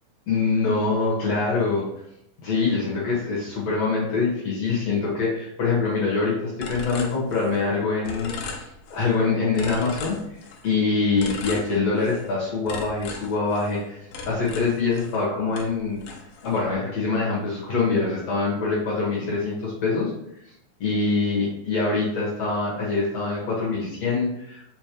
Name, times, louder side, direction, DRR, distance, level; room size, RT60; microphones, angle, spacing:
voice 1, 0.3-1.9 2.4-10.2 10.6-14.0 14.3-16.0 16.4-20.1 20.8-24.7, left 4 dB, 55° left, -6 dB, 2.3 m, -24 dB
sound 1, 6.6-7.8 8.0-9.2 9.5-10.7 11.2-12.3 12.7-15.3 15.5-16.7, left 3 dB, 80° left, 2.7 m, -37 dB
5.8 x 5.4 x 3.0 m, 0.77 s
omnidirectional pair, 4.4 m